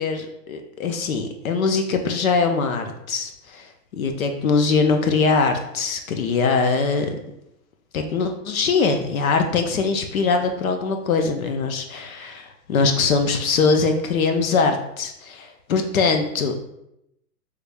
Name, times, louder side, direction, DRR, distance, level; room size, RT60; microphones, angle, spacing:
voice 1, 0.0-7.2 7.9-16.6, left 4 dB, 60° left, 5 dB, 0.5 m, -22 dB
3.2 x 2.3 x 3.3 m, 0.82 s
hypercardioid pair, 170°, 49 cm